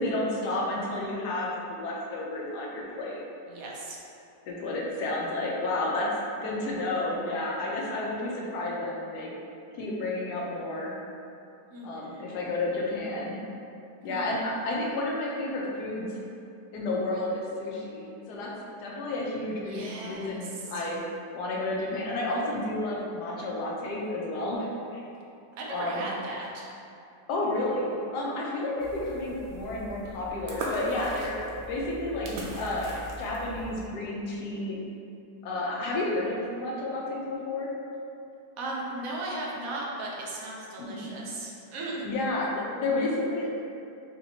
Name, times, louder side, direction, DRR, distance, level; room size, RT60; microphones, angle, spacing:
voice 1, 0.0-3.2 4.5-9.3 9.7-11.0 11.8-13.4 14.0-16.1 16.7-18.5 18.8-21.0 21.3-25.0 25.7-26.0 27.3-31.4 31.7-32.3 32.6-32.9 33.2-34.8 35.4-37.7 40.8-41.1 42.0-43.6, left 2 dB, 80° left, -3 dB, 1.2 m, -31 dB
voice 2, 3.5-4.0 11.7-12.4 14.1-14.2 19.7-20.4 25.6-26.7 38.6-42.0, right 2 dB, 65° right, -4 dB, 1.0 m, -37 dB
sound 1, 28.8-33.9, right 1 dB, 80° right, 0.6 m, -39 dB
4.1 x 2.9 x 2.7 m, 2.6 s
omnidirectional pair, 1.7 m